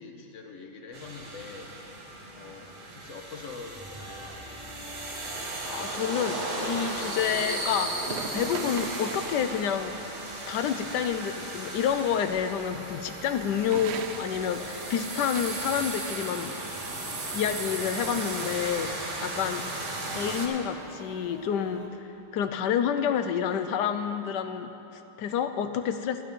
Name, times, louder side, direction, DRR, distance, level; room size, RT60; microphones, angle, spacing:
voice 1, 0.0-1.8 2.3-2.7 2.9-4.4, left 4 dB, 55° left, 3 dB, 1.2 m, -44 dB
sound 1, 0.9-20.5, right 2 dB, 45° right, 1.8 m, -36 dB
sound 2, 3.7-21.9, right 1 dB, 20° right, 1.3 m, -50 dB
voice 2, 5.6-10.0 10.5-16.6 17.3-19.6 20.1-26.2, left 8 dB, 85° left, 9 dB, 1.2 m, -29 dB
sound 3, 8.0-9.5 13.4-14.4 14.7-15.6, right 7 dB, 80° right, 1.2 m, -39 dB
12.0 x 11.0 x 5.3 m, 2.9 s
omnidirectional pair, 1.8 m